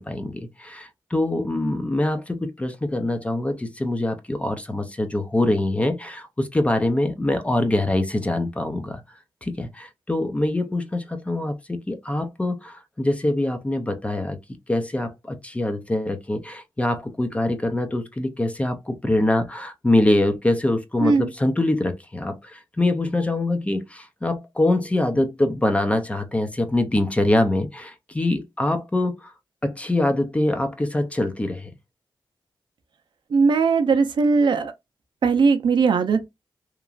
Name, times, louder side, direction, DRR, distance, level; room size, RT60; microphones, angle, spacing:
voice 1, 0.0-9.0 9.4-14.4 14.7-29.3 29.6-31.7, left 1 dB, 15° left, 0.4 m, -24 dB
voice 2, 33.3-34.7 35.2-36.3, right 4 dB, 65° right, 0.5 m, -19 dB
2.9 x 2.4 x 2.4 m
wide cardioid pair, 130°, 9 cm